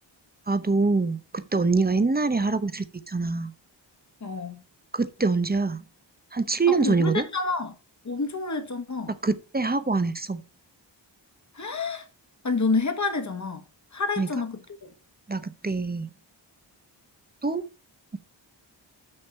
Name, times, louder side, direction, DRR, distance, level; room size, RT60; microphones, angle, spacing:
voice 1, 0.5-3.5 4.9-5.8 6.3-7.3 9.2-10.4 14.2-14.3 15.3-16.1 17.4-17.6, right 3 dB, 20° right, 0.7 m, -25 dB
voice 2, 4.2-4.6 6.7-7.7 8.0-9.1 11.5-12.0 12.4-13.6 13.9-14.6, left 4 dB, 40° left, 1.3 m, -28 dB
6.5 x 6.4 x 5.4 m
wide cardioid pair, 120°, 44 cm